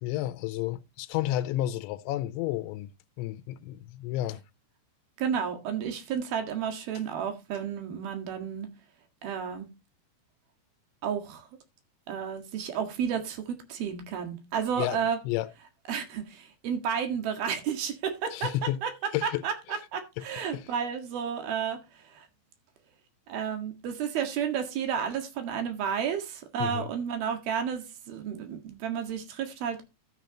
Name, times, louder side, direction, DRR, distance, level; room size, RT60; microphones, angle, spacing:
voice 1, 0.0-2.9 3.2-4.4 14.8-15.0 15.2-15.5 18.3-18.8 19.1-19.4 19.7-19.8 20.2-20.3 20.5-20.7 26.6-26.9, left 14 dB, 85° left, 2.9 m, -31 dB
voice 2, 5.2-8.7 9.2-9.7 11.0-11.5 12.1-15.2 15.9-18.9 19.2-21.8 22.1-22.3 23.3-29.8, right 7 dB, 60° right, 3.3 m, -32 dB
12.5 x 8.4 x 2.9 m
omnidirectional pair, 5.3 m